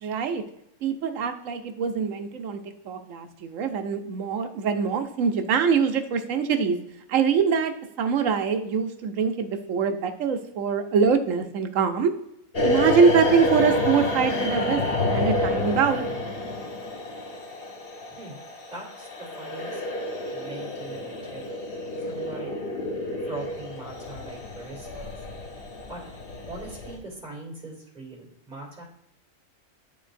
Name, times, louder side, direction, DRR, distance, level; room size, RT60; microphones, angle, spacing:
voice 1, 0.0-0.4 0.8-2.6 2.9-6.8 7.1-7.7 8.0-12.1 12.6-14.8 15.1-16.1, right 6 dB, 75° right, 7 dB, 1.1 m, -24 dB
sound 1, 12.5-27.0, left 1 dB, 50° left, 1.1 m, -29 dB
voice 2, 18.7-19.8 20.3-21.6 22.1-22.6 23.2-25.1 25.9-26.0 26.4-28.8, right 2 dB, 35° right, -5 dB, 2.4 m, -41 dB
11.0 x 4.0 x 2.5 m, 0.82 s
omnidirectional pair, 1.4 m